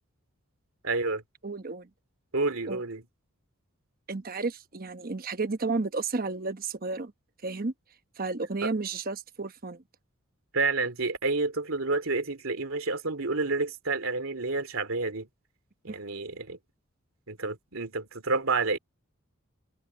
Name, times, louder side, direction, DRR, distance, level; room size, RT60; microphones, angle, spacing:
voice 1, 0.8-1.2 2.3-3.0 8.6-8.7 10.5-15.3 15.8-16.6 17.3-18.8, right 3 dB, 70° right, 2.7 m, -29 dB
voice 2, 1.4-1.9 2.7-2.8 4.1-7.1 7.4-7.7 8.2-9.8 15.9-16.0, right 3 dB, 45° right, 1.0 m, -32 dB
head